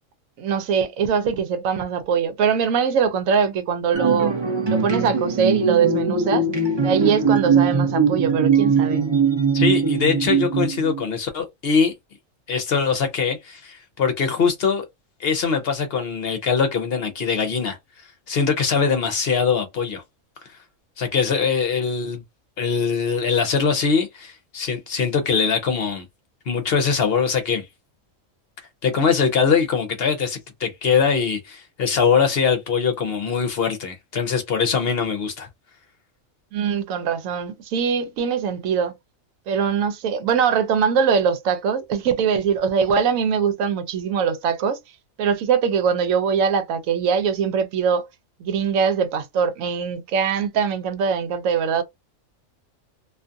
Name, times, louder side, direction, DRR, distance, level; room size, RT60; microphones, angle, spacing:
voice 1, 0.4-4.3 4.7-6.5 6.8-9.0 36.5-38.9 39.5-44.8 45.2-48.1 48.4-51.8, right 6 dB, 85° right, 1.0 m, -22 dB
sound 1, 3.9-11.0, right 5 dB, 35° right, 0.4 m, -21 dB
voice 2, 9.5-11.9 12.5-14.9 15.2-17.8 18.3-20.0 21.0-22.2 22.6-26.0 26.5-27.6 28.8-35.5, left 6 dB, 60° left, 0.7 m, -22 dB
2.5 x 2.3 x 2.5 m
omnidirectional pair, 1.4 m